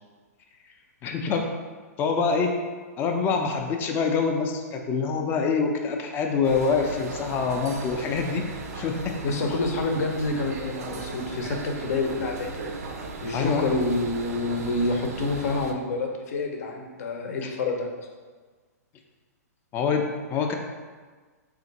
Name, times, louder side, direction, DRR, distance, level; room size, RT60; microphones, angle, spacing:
voice 1, 1.0-1.5 2.0-2.6 3.0-8.5 8.7-9.2 13.3-13.7 17.4-17.5 19.7-20.5, left 5 dB, 25° left, 3 dB, 0.4 m, -25 dB
sound 1, 6.4-15.7, right 4 dB, 65° right, 0.5 m, -37 dB
voice 2, 9.2-12.7 13.2-17.9, left 2 dB, 65° left, 2 dB, 0.7 m, -27 dB
3.6 x 2.5 x 4.0 m, 1.4 s
hypercardioid pair, 135°, 9 cm